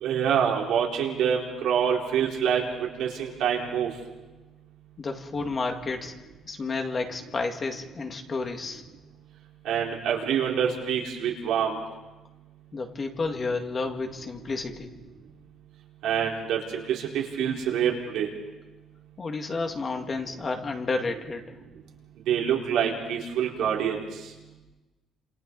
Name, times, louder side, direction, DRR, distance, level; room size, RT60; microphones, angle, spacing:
voice 1, 0.0-2.6 3.0-3.9 9.6-11.8 16.0-18.3 22.3-24.0, right 8 dB, 80° right, -1 dB, 4.5 m, -26 dB
voice 2, 5.0-6.1 6.5-8.8 12.7-14.9 19.2-21.4, left 3 dB, 35° left, 4 dB, 2.2 m, -31 dB
28.5 x 27.5 x 4.2 m, 1.1 s
cardioid pair, 120°, 0 cm